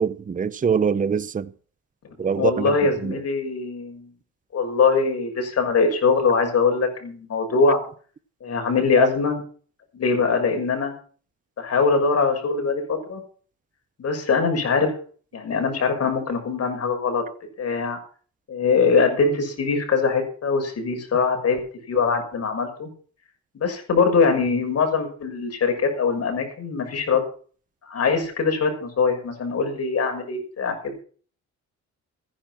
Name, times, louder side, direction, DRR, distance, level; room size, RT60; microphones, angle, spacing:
voice 1, 0.0-1.5 2.2-2.7 3.0-3.2 9.0-9.1, right 6 dB, 25° right, 0.8 m, -23 dB
voice 2, 2.3-4.1 4.5-7.8 8.4-9.4 9.9-10.9 11.6-13.2 14.0-14.9 15.3-17.2 17.6-18.0 18.5-21.6 21.9-22.9 23.5-27.2 27.9-30.9, left 4 dB, 55° left, 6.4 m, -22 dB
15.0 x 10.5 x 6.0 m
cardioid pair, 90°, 30 cm